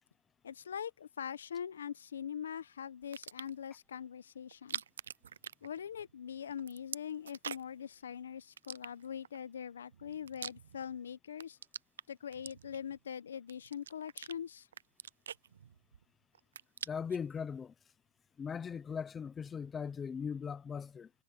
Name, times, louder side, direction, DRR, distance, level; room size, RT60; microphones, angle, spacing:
voice 1, 0.4-4.8 5.6-11.6 12.1-14.7, left 8 dB, 70° left, 0.9 m, -42 dB
sound 1, 3.0-3.7 4.5-6.2 6.4-7.8 8.6-9.4 9.9-11.0 11.3-13.0 13.5-14.4 14.7-16.0 16.3-17.2, right 8 dB, 70° right, 0.4 m, -45 dB
voice 2, 16.9-17.7 18.4-21.1, left 6 dB, 10° left, 0.7 m, -39 dB
hypercardioid pair, 160°, 0 cm